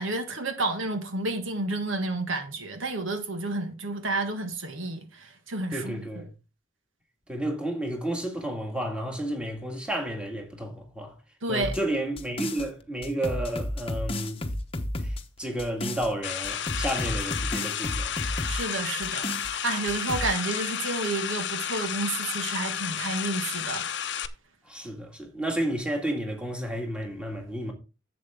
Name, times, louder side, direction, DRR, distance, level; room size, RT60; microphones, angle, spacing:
voice 1, 0.0-6.0 11.4-11.7 18.4-23.8, right 2 dB, 70° right, 1.7 m, -30 dB
voice 2, 5.7-6.3 7.3-11.2 11.5-14.4 15.0-18.4 24.6-27.7, right 1 dB, 5° right, 1.9 m, -31 dB
sound 1, 11.6-12.7 13.0-16.1 16.4-18.7 19.0-19.5 19.9-20.3, left 1 dB, 25° left, 1.0 m, -32 dB
sound 2, 16.2-24.3, left 9 dB, 55° left, 0.7 m, -32 dB
11.0 x 7.7 x 3.6 m
head